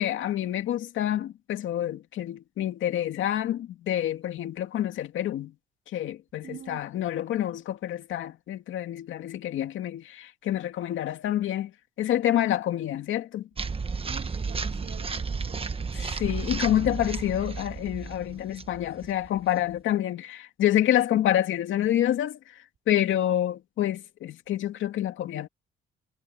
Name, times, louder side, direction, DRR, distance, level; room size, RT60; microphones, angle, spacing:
voice 1, 0.0-5.5 5.9-11.7 12.0-13.5 15.9-22.4 22.9-25.5, left 12 dB, 80° left, 2.4 m, -27 dB
voice 2, 6.4-6.8 14.0-16.1, right 9 dB, 60° right, 3.2 m, -46 dB
sound 1, 13.6-19.7, right 4 dB, 30° right, 1.4 m, -33 dB
cardioid pair, 90°, 20 cm